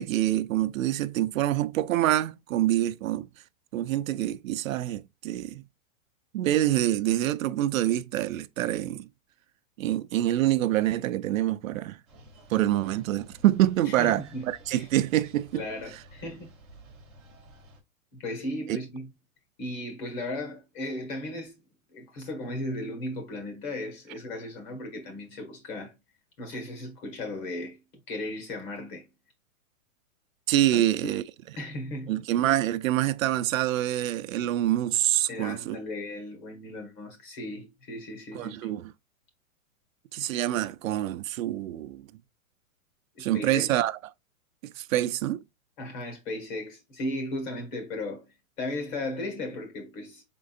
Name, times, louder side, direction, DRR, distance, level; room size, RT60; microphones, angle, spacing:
voice 1, 0.0-3.3 3.7-5.6 6.3-9.1 9.8-12.0 12.5-15.6 30.5-31.2 32.1-35.8 38.3-38.9 40.1-42.1 43.2-44.0 44.6-45.4, right 13 dB, 75° right, 0.5 m, -26 dB
sound 1, 12.1-17.8, right 1 dB, ahead, 0.4 m, -52 dB
voice 2, 13.9-14.5 14.7-14.8 15.5-16.5 18.1-19.1 19.6-21.5 21.9-26.0 26.4-27.8 28.1-29.1 30.7-31.2 31.6-32.2 35.3-38.6 43.1-43.7 45.8-50.2, left 1 dB, 35° left, 1.6 m, -36 dB
5.1 x 3.8 x 2.5 m
supercardioid pair, 160°, 41 cm